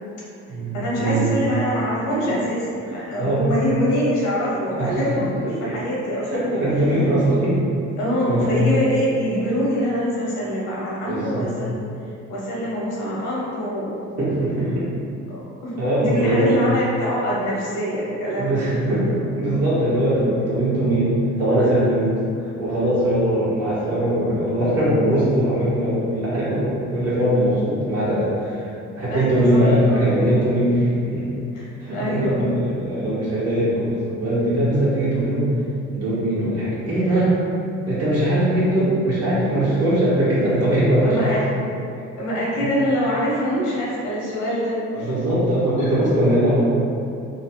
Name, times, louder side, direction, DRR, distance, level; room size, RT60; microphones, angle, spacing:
voice 1, 0.7-6.5 6.9-7.5 8.0-11.8 12.3-14.1 15.3-18.7 19.8-19.9 29.1-30.3 31.5-32.4 41.0-41.4 42.2-45.1 45.8-45.9, equal, 85° left, -6 dB, 0.9 m, -25 dB
voice 2, 3.2-3.5 4.7-5.3 6.3-7.6 8.3-8.5 11.0-11.5 14.2-14.9 15.8-16.6 18.4-22.1 22.4-28.7 29.0-31.3 31.8-35.5 35.9-37.4 37.9-41.5 42.6-42.7 44.9-46.6, right 1 dB, 55° right, -9 dB, 1.2 m, -21 dB
3.0 x 2.1 x 2.8 m, 2.5 s
cardioid pair, 90°, 30 cm